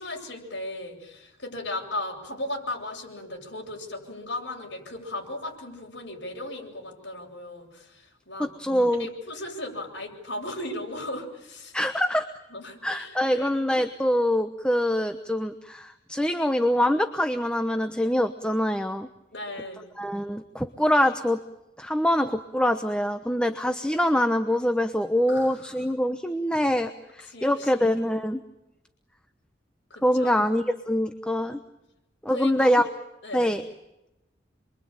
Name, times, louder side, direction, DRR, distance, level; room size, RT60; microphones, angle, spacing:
voice 1, 0.0-8.5 8.9-11.8 12.5-13.5 19.3-19.9 25.3-25.7 27.3-27.8 30.2-30.5 32.3-32.9 33.2-33.6, left 1 dB, 75° left, 0 dB, 8.0 m, -36 dB
voice 2, 8.4-9.1 11.7-12.3 12.8-19.1 20.0-21.4 21.8-28.4 30.0-31.6 32.2-32.9 33.3-33.6, equal, 5° left, 7 dB, 1.0 m, -24 dB
27.5 x 23.0 x 9.0 m, 0.93 s
head